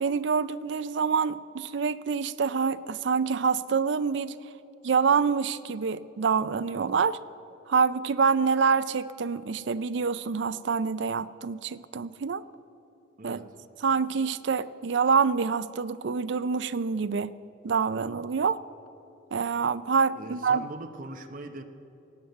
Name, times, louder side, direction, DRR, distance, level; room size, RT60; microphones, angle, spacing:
voice 1, 0.0-4.4 4.8-7.2 7.7-12.4 13.2-13.4 13.8-17.3 17.6-18.6 19.3-20.6, right 5 dB, 60° right, 16 dB, 0.4 m, -26 dB
voice 2, 13.2-13.6 20.1-21.6, right 2 dB, 45° right, 6 dB, 0.8 m, -41 dB
17.0 x 9.2 x 7.9 m, 3.0 s
head